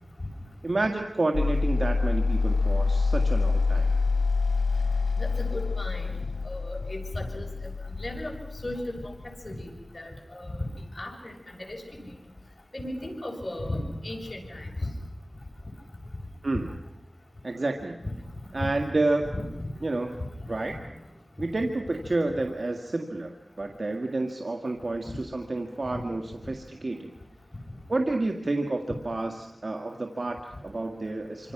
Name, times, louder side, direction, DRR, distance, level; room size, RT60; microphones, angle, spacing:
voice 1, 0.6-3.9 16.4-16.7 17.4-18.0 18.5-19.3 19.8-20.1 20.5-20.8 21.4-27.1 27.9-31.5, right 2 dB, 65° right, 4 dB, 1.8 m, -29 dB
sound 1, 1.3-9.5, left 4 dB, 80° left, 1.9 m, -26 dB
voice 2, 5.2-6.1 6.4-7.5 8.0-8.4 8.6-9.1 9.4-9.7 9.9-10.7 11.0-12.1 12.7-14.7 18.0-18.1 18.6-18.7 19.2-19.7 20.2-20.3 20.7-20.8 25.1-25.2, left 1 dB, 40° left, 1 dB, 7.2 m, -35 dB
27.5 x 26.0 x 6.0 m, 0.93 s
wide cardioid pair, 40°, 0 cm